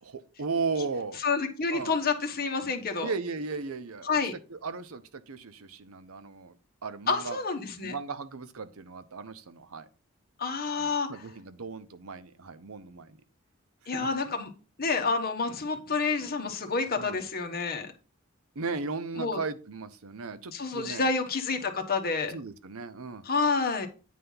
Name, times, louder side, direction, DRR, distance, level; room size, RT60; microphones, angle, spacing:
voice 1, 0.0-1.2 1.7-2.0 3.0-4.1 4.5-6.6 6.8-7.4 7.8-9.9 10.7-13.2 13.9-14.1 17.0-17.2 18.6-21.1 22.3-23.2, right 4 dB, 80° right, 12 dB, 0.7 m, -36 dB
voice 2, 1.2-3.1 4.0-4.3 7.1-8.0 10.4-11.2 13.9-14.5 14.8-17.9 19.2-19.4 20.5-22.4 23.2-23.9, left 4 dB, 45° left, 5 dB, 1.2 m, -29 dB
9.3 x 3.4 x 5.5 m, 0.34 s
head